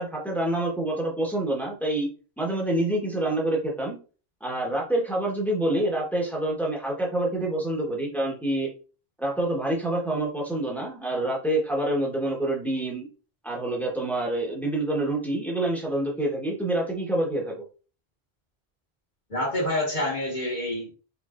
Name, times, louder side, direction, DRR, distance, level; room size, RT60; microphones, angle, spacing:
voice 1, 0.0-2.1 2.4-4.0 4.4-8.7 9.2-13.1 13.4-17.6, right 1 dB, ahead, -2 dB, 1.3 m, -27 dB
voice 2, 19.3-20.9, left 1 dB, 45° left, -3 dB, 1.7 m, -27 dB
4.5 x 4.0 x 2.5 m, 0.36 s
omnidirectional pair, 1.1 m